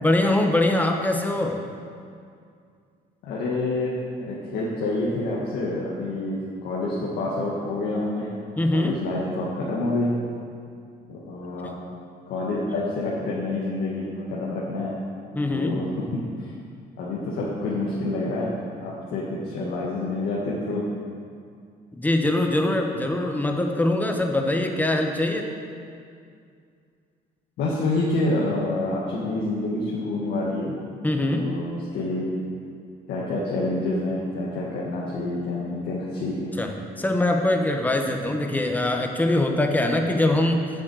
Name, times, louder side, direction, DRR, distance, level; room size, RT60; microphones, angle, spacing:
voice 1, 0.0-1.6 8.6-9.0 15.3-15.8 22.0-25.5 31.0-31.5 36.6-36.7 37.0-40.7, left 1 dB, 10° left, 3 dB, 1.2 m, -23 dB
voice 2, 3.2-3.9 4.2-8.3 8.7-10.1 11.1-11.7 12.3-15.0 15.5-16.5 17.0-20.8 27.6-30.8 31.2-32.3 33.1-36.5, left 2 dB, 75° left, -5 dB, 1.9 m, -28 dB
8.0 x 7.5 x 7.9 m, 2.3 s
cardioid pair, 110°, 17 cm